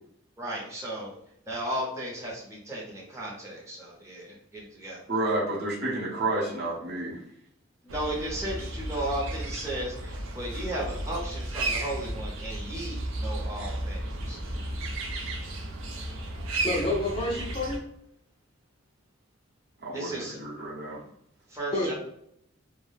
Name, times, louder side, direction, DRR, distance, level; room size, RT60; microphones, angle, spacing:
voice 1, 0.4-1.1 1.5-5.0 7.8-14.4 19.9-20.4 21.5-21.9, right 1 dB, 15° right, -4 dB, 0.6 m, -35 dB
voice 2, 5.1-7.2 19.8-21.0, right 2 dB, 50° right, -6 dB, 0.8 m, -30 dB
sound 1, 7.9-17.8, right 2 dB, 70° right, 0.5 m, -34 dB
voice 3, 16.6-17.8 21.7-21.9, left 1 dB, 25° left, -1 dB, 0.4 m, -29 dB
2.3 x 2.1 x 3.2 m, 0.73 s
head